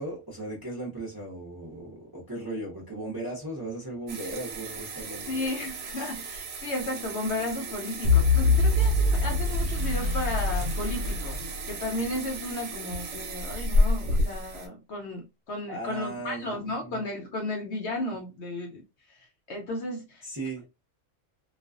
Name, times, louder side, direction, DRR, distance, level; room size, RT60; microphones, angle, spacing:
voice 1, 0.0-5.4 15.7-16.4 16.8-17.0 20.2-20.6, right 2 dB, 20° right, 0.6 m, -37 dB
sound 1, 4.1-14.7, equal, 70° right, 1.0 m, -32 dB
voice 2, 5.3-18.8 19.1-20.2, left 2 dB, 60° left, 0.8 m, -34 dB
sound 2, 8.0-12.2, left 2 dB, 90° left, 1.1 m, -24 dB
2.4 x 2.3 x 2.3 m
omnidirectional pair, 1.5 m